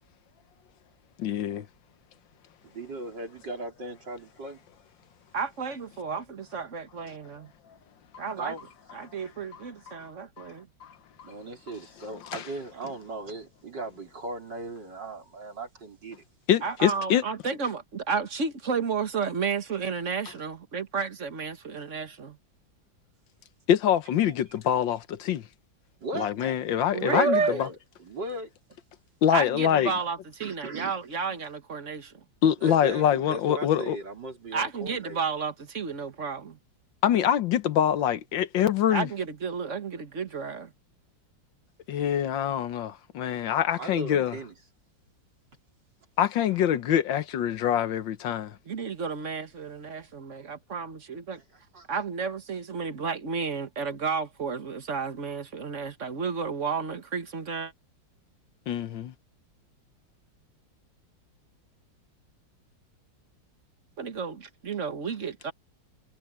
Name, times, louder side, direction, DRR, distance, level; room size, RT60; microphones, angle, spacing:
voice 1, 1.2-1.7 8.1-8.2 9.9-10.0 10.4-10.5 10.8-10.9 11.2-11.3 12.3-12.4 16.5-17.2 23.7-25.5 26.1-27.7 29.2-29.9 32.4-34.0 37.0-39.1 41.9-44.4 46.2-48.6 58.7-59.1, left 10 dB, 75° left, 1.7 m, -25 dB
voice 2, 2.6-4.6 8.3-8.6 11.2-16.2 26.0-26.6 27.1-28.5 30.4-30.9 32.6-35.2 43.8-44.5 51.3-51.4 51.7-51.9, right 2 dB, 65° right, 4.9 m, -37 dB
voice 3, 5.3-7.5 8.2-8.5 8.9-10.7 16.6-22.4 26.9-27.6 29.3-32.2 34.5-36.6 38.9-40.7 48.7-51.4 51.9-57.7 64.0-65.5, right 5 dB, 40° right, 1.8 m, -32 dB
omnidirectional pair, 2.1 m